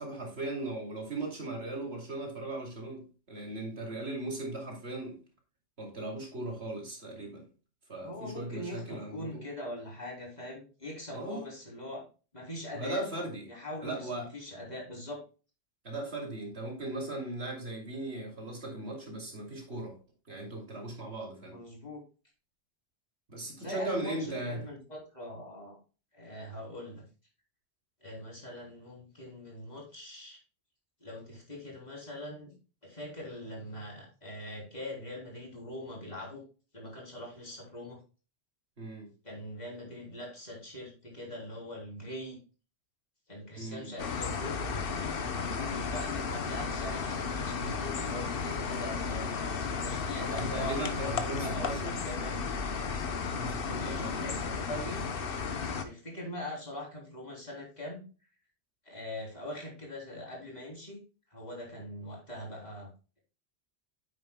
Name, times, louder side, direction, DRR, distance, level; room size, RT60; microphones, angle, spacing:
voice 1, 0.0-5.2 5.8-7.4 7.9-9.4 11.1-11.5 12.7-13.4 13.8-14.3 15.8-20.0 20.3-21.6 23.3-24.6 38.8-39.1 43.6-44.0 50.3-52.0 53.4-54.4, right 2 dB, 70° right, 0 dB, 2.8 m, -38 dB
voice 2, 8.0-12.0 12.3-13.0 13.5-15.2 21.5-22.0 23.6-25.8 26.1-27.0 28.0-30.4 31.0-32.5 32.8-36.4 36.7-38.0 39.2-42.4 43.3-44.6 45.5-52.3 53.6-55.1 55.5-58.0 58.8-61.0 61.3-62.9, left 1 dB, 40° left, -3 dB, 3.5 m, -42 dB
sound 1, 44.0-55.8, left 5 dB, 60° left, 1.0 m, -34 dB
9.4 x 8.6 x 2.2 m, 0.34 s
omnidirectional pair, 1.1 m